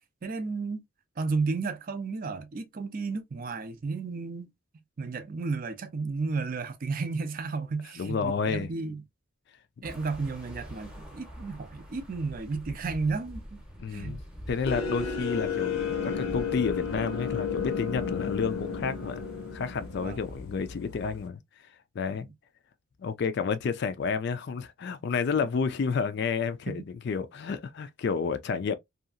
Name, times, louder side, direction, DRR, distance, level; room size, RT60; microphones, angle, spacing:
voice 1, 0.2-0.8 1.2-4.5 5.0-9.0 9.8-13.6 13.9-14.2 20.0-20.2 26.7-26.8, right 4 dB, 40° right, 0.4 m, -33 dB
voice 2, 8.0-8.7 13.8-14.2 14.5-19.2 19.5-21.4 22.0-22.3 23.0-28.7, left 5 dB, 55° left, 0.3 m, -30 dB
sound 1, 9.8-20.4, equal, 5° right, 0.7 m, -45 dB
sound 2, 14.7-21.2, left 6 dB, 90° left, 0.7 m, -33 dB
2.7 x 2.4 x 2.4 m
head